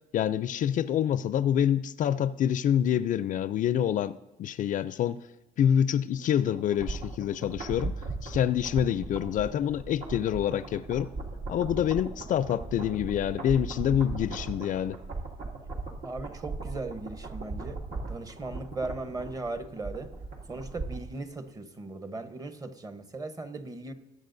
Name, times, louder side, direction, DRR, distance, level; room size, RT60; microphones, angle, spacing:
voice 1, 0.1-5.2 5.6-7.9 8.2-11.1 11.5-15.0, left 10 dB, 50° left, 0.4 m, -27 dB
sound 1, 6.5-21.2 21.5-21.6, right 3 dB, 65° right, 2.2 m, -38 dB
voice 2, 16.0-17.8 18.1-20.1 20.5-23.9, right 2 dB, 20° right, 0.9 m, -38 dB
19.5 x 8.7 x 2.6 m
cardioid pair, 110°, 17 cm